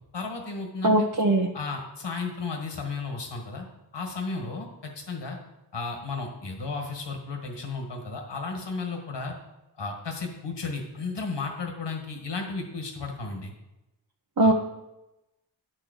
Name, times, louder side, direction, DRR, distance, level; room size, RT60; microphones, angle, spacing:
voice 1, 0.1-1.1 1.5-3.7 3.9-5.4 5.7-9.3 9.8-13.5 14.4-14.5, left 4 dB, 70° left, 2 dB, 1.6 m, -34 dB
voice 2, 0.8-1.5 14.4-14.5, right 1 dB, 50° right, 1 dB, 0.9 m, -20 dB
9.7 x 4.8 x 6.4 m, 0.97 s
cardioid pair, 45°, 43 cm